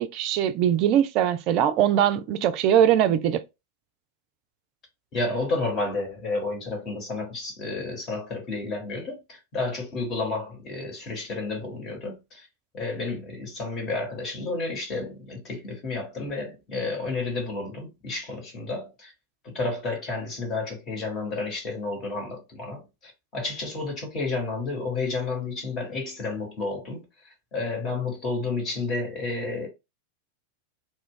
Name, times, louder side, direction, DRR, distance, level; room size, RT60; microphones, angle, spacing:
voice 1, 0.0-3.4, right 10 dB, 40° right, 0.3 m, -21 dB
voice 2, 5.1-12.5 12.7-19.1 19.4-29.7, left 3 dB, 30° left, 1.2 m, -31 dB
2.3 x 2.1 x 3.6 m
figure-of-eight pair, 90°, 0 cm